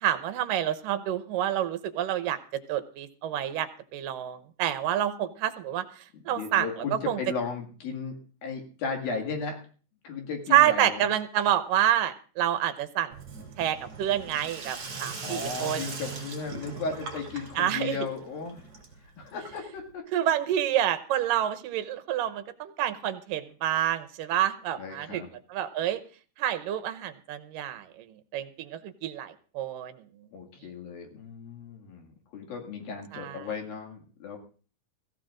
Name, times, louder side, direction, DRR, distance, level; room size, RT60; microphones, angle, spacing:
voice 1, 0.0-2.4 2.7-5.8 6.3-6.7 7.1-7.2 10.5-13.1 13.6-15.8 17.6-18.0 20.1-25.2 25.5-26.0 26.4-28.1 28.3-30.0 33.1-33.4, right 11 dB, 75° right, 12 dB, 2.4 m, -28 dB
voice 2, 6.1-8.2 8.4-9.6 10.0-11.1 15.2-18.6 19.2-20.0 24.8-25.3 30.3-34.4, left 4 dB, 75° left, 2 dB, 3.9 m, -35 dB
Sink (filling or washing), 13.1-19.9, right 4 dB, 40° right, 3.6 m, -40 dB
24.0 x 15.0 x 2.5 m, 0.40 s
omnidirectional pair, 4.2 m